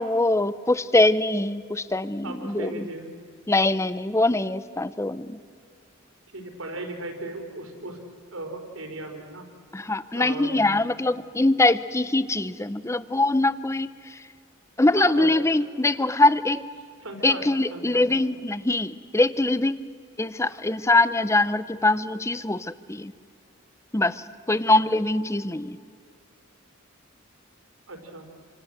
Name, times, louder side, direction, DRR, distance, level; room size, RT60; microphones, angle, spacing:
voice 1, 0.0-2.9 3.5-5.4 9.7-13.9 14.8-16.6 17.2-19.8 20.2-23.1 23.9-25.8, left 2 dB, 15° left, 15 dB, 0.6 m, -23 dB
voice 2, 2.2-3.1 6.3-8.0 8.3-9.5 10.1-10.8 15.0-15.3 17.0-18.1 24.5-24.9 27.9-28.3, right 2 dB, 80° right, 3 dB, 4.4 m, -37 dB
28.0 x 25.5 x 7.9 m, 2.1 s
head